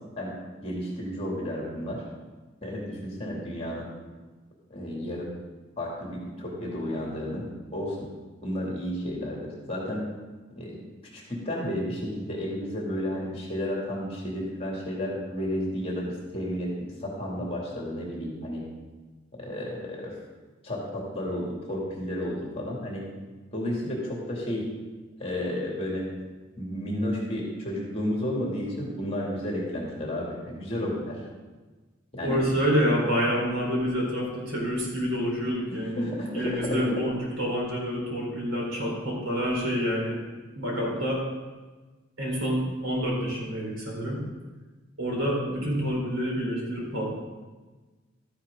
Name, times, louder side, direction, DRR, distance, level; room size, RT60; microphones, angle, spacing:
voice 1, 0.6-2.0 2.6-3.9 4.7-5.3 5.8-7.4 7.7-8.1 8.4-9.4 9.7-10.1 10.5-10.8 11.1-16.7 17.0-18.6 19.3-20.2 20.6-23.0 23.5-24.6 25.2-26.1 26.6-31.2 32.1-32.4 35.7-36.9, equal, 30° left, -3 dB, 2.6 m, -32 dB
voice 2, 32.2-40.1 40.5-41.2 42.2-44.2 45.0-47.1, equal, 85° right, -3 dB, 4.1 m, -27 dB
13.0 x 9.7 x 3.8 m, 1.3 s
head